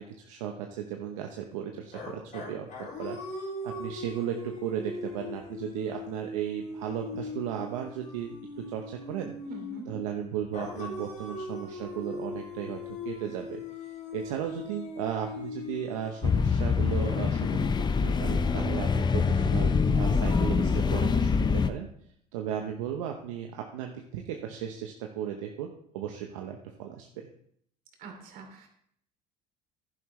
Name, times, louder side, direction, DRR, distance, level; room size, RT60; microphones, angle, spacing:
voice 1, 0.0-3.2 3.6-8.4 8.7-9.3 9.9-12.8 13.0-13.9 14.1-19.7 20.0-21.9 22.3-27.3, right 9 dB, 85° right, 2 dB, 0.9 m, -35 dB
sound 1, 1.9-10.0 10.5-18.6, left 3 dB, 50° left, 3.9 m, -40 dB
voice 2, 9.5-9.9 28.0-28.7, right 5 dB, 65° right, 3 dB, 2.9 m, -44 dB
sound 2, 16.2-21.7, left 5 dB, 25° left, 0.7 m, -25 dB
11.0 x 11.0 x 3.2 m, 0.66 s
supercardioid pair, 80°, 16 cm